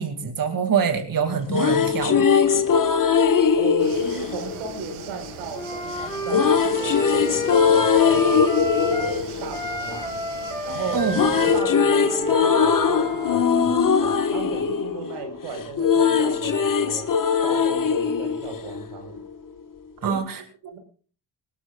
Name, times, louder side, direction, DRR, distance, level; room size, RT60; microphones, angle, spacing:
voice 1, 0.0-2.7 10.9-11.2 20.0-20.4, right 6 dB, 40° right, 5 dB, 2.4 m, -25 dB
sound 1, 1.3-5.4 6.3-10.5 10.8-19.3, left 6 dB, 40° left, 1.5 m, -21 dB
voice 2, 3.5-10.2 10.6-11.1 11.5-17.1 17.4-19.2 20.0-20.8, right 5 dB, 90° right, 4 dB, 4.5 m, -36 dB
sound 2, 3.8-11.6, right 8 dB, 75° right, 2.4 m, -40 dB
Wind instrument woodwind instrument, 5.5-9.2 9.5-13.4, equal, 5° left, 5.6 m, -29 dB
19.5 x 19.0 x 2.4 m, 0.40 s
cardioid pair, 80°, 50 cm